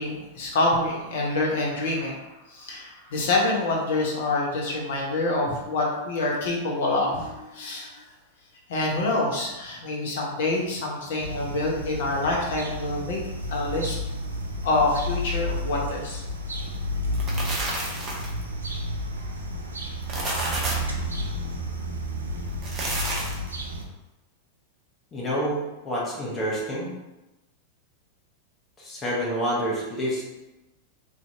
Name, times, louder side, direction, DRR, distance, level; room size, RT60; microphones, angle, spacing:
voice 1, 0.0-8.0 8.7-13.2 13.5-14.0 14.6-16.2, left 2 dB, 55° left, -2 dB, 0.7 m, -26 dB
sound 1, 11.2-23.8, equal, 75° right, 0.3 m, -31 dB
sound 2, 17.1-18.4 19.9-21.0 22.5-23.5, right 2 dB, 25° right, 0.6 m, -30 dB
voice 2, 25.1-26.9 28.8-30.2, equal, 20° left, -6 dB, 0.9 m, -28 dB
2.6 x 2.3 x 2.6 m, 1.0 s
figure-of-eight pair, 90°, 0 cm